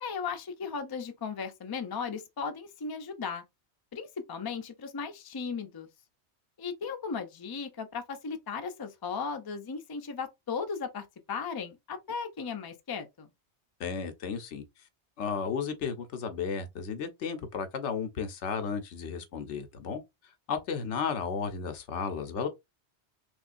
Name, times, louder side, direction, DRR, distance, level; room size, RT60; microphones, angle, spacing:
voice 1, 0.0-3.4 3.9-5.9 6.6-13.3, left 5 dB, 30° left, 0.4 m, -36 dB
voice 2, 13.8-14.6 15.2-20.0 20.5-22.5, left 6 dB, 85° left, 1.0 m, -33 dB
3.5 x 3.1 x 2.5 m
omnidirectional pair, 1.2 m